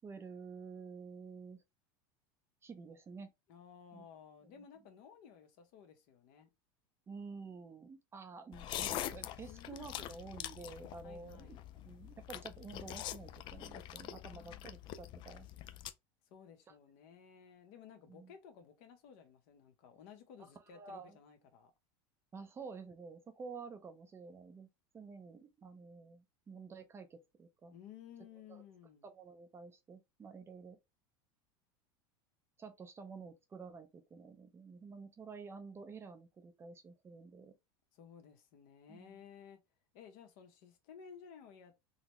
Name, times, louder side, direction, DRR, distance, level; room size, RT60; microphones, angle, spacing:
voice 1, 0.0-1.6 2.6-3.3 3.9-4.0 7.1-11.6 11.8-15.5 16.7-16.8 18.1-18.3 20.7-21.2 22.3-24.7 24.9-27.8 28.5-28.6 29.0-30.8 32.6-37.5 38.9-39.2, right 4 dB, 20° right, 0.5 m, -50 dB
voice 2, 3.5-6.5 9.5-10.1 11.0-11.6 14.3-14.8 16.2-21.7 27.7-29.0 37.9-39.6 39.9-41.7, left 7 dB, 65° left, 1.0 m, -56 dB
sound 1, 8.5-15.9, left 12 dB, 40° left, 0.3 m, -44 dB
3.9 x 2.1 x 3.0 m
supercardioid pair, 125°, 12 cm